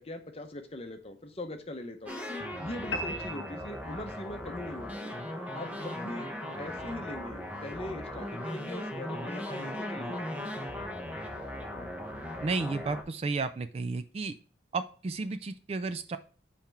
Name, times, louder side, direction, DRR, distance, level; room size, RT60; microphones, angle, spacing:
voice 1, 0.0-2.1 2.6-5.2 5.5-6.3 6.6-10.4, left 1 dB, 30° left, 5 dB, 0.8 m, -41 dB
sound 1, 2.1-13.0, left 1 dB, 10° right, 0.8 m, -38 dB
sound 2, 2.9-4.4, equal, 75° left, 0.7 m, -38 dB
voice 2, 12.4-14.3 14.7-16.2, right 3 dB, 35° right, 11 dB, 0.3 m, -32 dB
5.7 x 4.3 x 4.5 m, 0.40 s
head